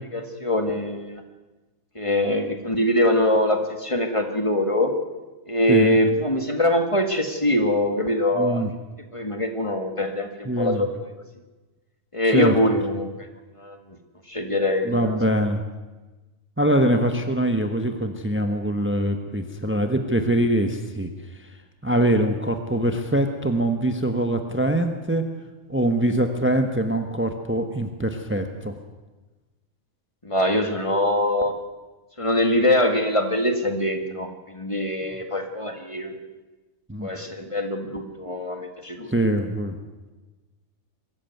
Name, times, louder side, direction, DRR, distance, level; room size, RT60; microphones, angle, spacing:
voice 1, 0.1-1.2 2.0-4.9 5.5-8.6 9.1-10.9 12.1-13.1 13.6-13.8 14.3-15.2 30.2-31.5 32.2-36.2 37.0-39.1, left 1 dB, 25° left, 5 dB, 1.9 m, -23 dB
voice 2, 8.4-8.7 10.4-10.8 12.2-12.5 14.8-15.6 16.6-21.1 21.4-21.5 21.8-25.2 25.7-28.8 36.9-37.1 39.1-39.8, right 1 dB, 10° right, 6 dB, 1.2 m, -23 dB
23.0 x 14.0 x 9.3 m, 1.2 s
omnidirectional pair, 1.3 m